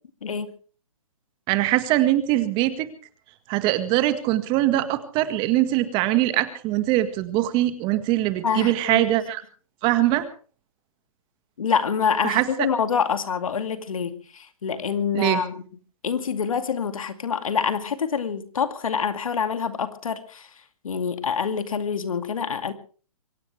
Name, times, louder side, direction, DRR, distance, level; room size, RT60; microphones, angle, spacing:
voice 1, 0.2-0.5 8.4-9.1 11.6-15.6 16.0-20.5 20.8-22.7, left 6 dB, 75° left, 9 dB, 2.3 m, -26 dB
voice 2, 1.5-2.9 3.5-9.4 9.8-10.3 12.2-12.5 15.1-15.4, right 15 dB, 30° right, 11 dB, 1.8 m, -22 dB
24.0 x 17.0 x 3.4 m, 0.40 s
hypercardioid pair, 135°, 18 cm